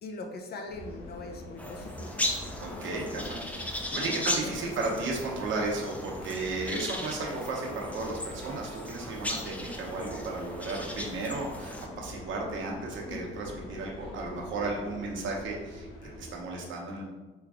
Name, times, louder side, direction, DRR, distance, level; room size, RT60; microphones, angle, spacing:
voice 1, 0.0-2.2 3.9-4.7, left 2 dB, 55° left, 3 dB, 0.7 m, -41 dB
sound 1, 0.7-16.4, left 1 dB, 85° left, 0.9 m, -44 dB
sound 2, 1.6-11.9, left 1 dB, 5° left, 0.6 m, -37 dB
voice 2, 2.6-3.4 3.9-15.9 16.2-17.1, right 3 dB, 75° right, -1 dB, 1.0 m, -34 dB
3.5 x 3.1 x 4.8 m, 1.2 s
cardioid pair, 90°, 20 cm